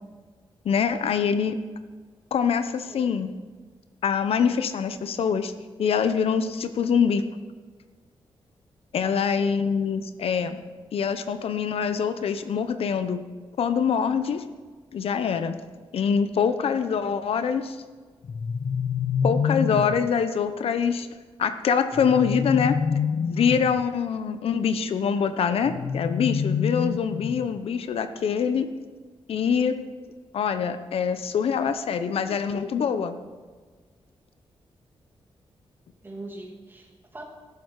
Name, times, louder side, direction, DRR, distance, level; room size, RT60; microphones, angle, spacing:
voice 1, 0.6-1.6 2.3-3.3 4.0-5.5 5.8-7.3 8.9-10.6 10.9-13.2 13.6-14.4 14.9-15.6 15.9-17.8 19.2-21.1 21.4-22.8 23.3-28.7 29.3-29.7 30.3-33.2, left 6 dB, 80° left, 10 dB, 0.9 m, -24 dB
voice 2, 9.0-9.5 36.0-37.2, right 2 dB, 20° right, 0 dB, 2.6 m, -42 dB
sound 1, 18.2-20.1 21.9-23.8 25.6-27.6, left 6 dB, 45° left, 0.5 m, -27 dB
14.0 x 12.0 x 4.8 m, 1.4 s
wide cardioid pair, 145°, 10 cm